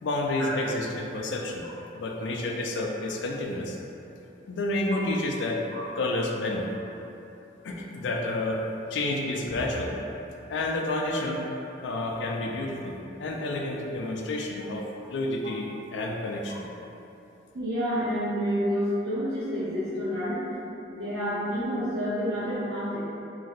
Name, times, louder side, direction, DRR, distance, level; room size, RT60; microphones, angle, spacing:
voice 1, 0.0-1.6 1.9-3.8 4.5-5.6 6.0-6.7 7.6-8.6 8.9-9.9 10.5-11.4 11.8-16.7, left 2 dB, 85° left, 1 dB, 0.4 m, -30 dB
voice 2, 17.5-20.4 20.9-23.0, equal, 65° right, -14 dB, 0.7 m, -29 dB
2.6 x 2.1 x 3.8 m, 2.9 s
head